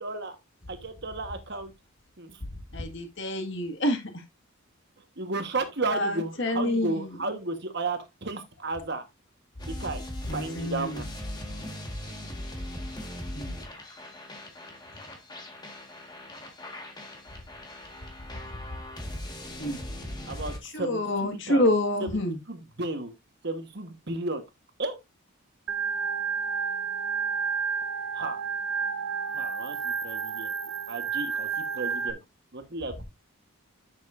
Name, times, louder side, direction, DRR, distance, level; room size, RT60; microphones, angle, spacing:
voice 1, 0.0-0.4 0.7-1.7 2.2-2.4 5.2-9.1 9.7-10.0 10.3-11.1 20.3-21.7 22.0-22.2 22.5-23.1 23.4-24.4 24.8-25.0 28.1-28.4 29.3-30.5 30.9-32.2 32.5-33.0, right 2 dB, 50° right, 1.3 m, -33 dB
voice 2, 2.7-4.0 5.9-7.1 10.3-11.0 13.3-13.5 19.6-19.8 20.6-22.4, left 1 dB, 55° left, 1.9 m, -27 dB
sound 1, 9.6-20.6, left 1 dB, 20° left, 1.7 m, -39 dB
Organ, 25.7-32.1, right 5 dB, 75° right, 0.9 m, -30 dB
10.5 x 6.7 x 2.6 m
head